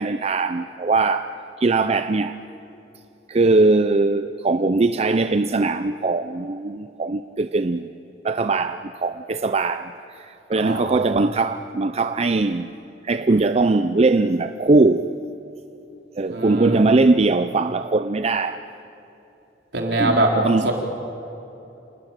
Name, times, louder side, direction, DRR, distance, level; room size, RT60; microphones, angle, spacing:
voice 1, 0.0-2.4 3.3-7.9 8.2-12.7 13.0-15.1 16.2-18.6 20.0-20.7, right 3 dB, 35° right, 0.5 m, -20 dB
voice 2, 10.6-10.9 16.3-16.8 19.7-20.3 20.6-20.7, right 2 dB, 65° right, 4.1 m, -22 dB
28.5 x 20.0 x 9.0 m
head